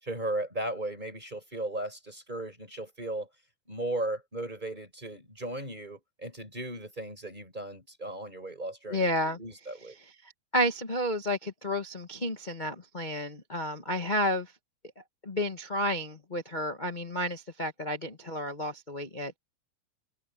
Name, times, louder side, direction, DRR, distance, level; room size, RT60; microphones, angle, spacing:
voice 1, 0.0-3.3 3.7-10.0, right 1 dB, 15° right, 5.2 m, -36 dB
voice 2, 8.9-9.4 10.5-14.5 15.2-19.4, equal, 85° left, 0.4 m, -31 dB
omnidirectional pair, 3.4 m